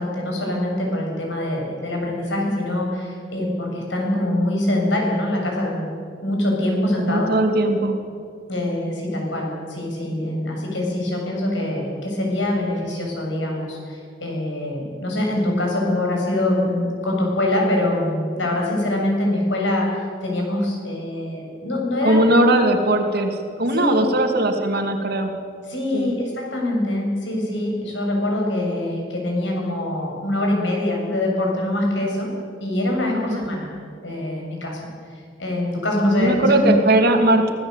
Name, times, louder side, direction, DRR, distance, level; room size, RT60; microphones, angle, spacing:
voice 1, 0.0-5.9 6.2-7.3 8.5-19.9 20.2-22.2 23.7-24.2 25.7-32.3 32.6-33.7 34.0-34.8 35.4-36.8, left 1 dB, 75° left, 0 dB, 7.0 m, -24 dB
voice 2, 7.1-8.0 22.0-25.3 25.9-26.1 33.3-33.4 36.0-37.5, right 1 dB, 60° right, 5 dB, 2.5 m, -19 dB
24.5 x 16.5 x 8.2 m, 2.3 s
head